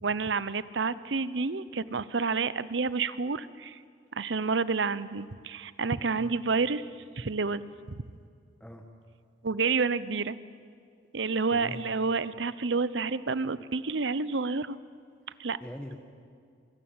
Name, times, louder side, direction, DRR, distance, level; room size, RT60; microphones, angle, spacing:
voice 1, 0.0-3.8 4.1-6.8 7.2-8.0 9.4-10.4 11.1-14.8 15.4-15.6, right 4 dB, 75° right, 16 dB, 0.8 m, -29 dB
voice 2, 11.5-11.8 15.3-16.0, equal, 5° left, 3 dB, 1.3 m, -43 dB
24.5 x 21.0 x 8.8 m, 2.3 s
head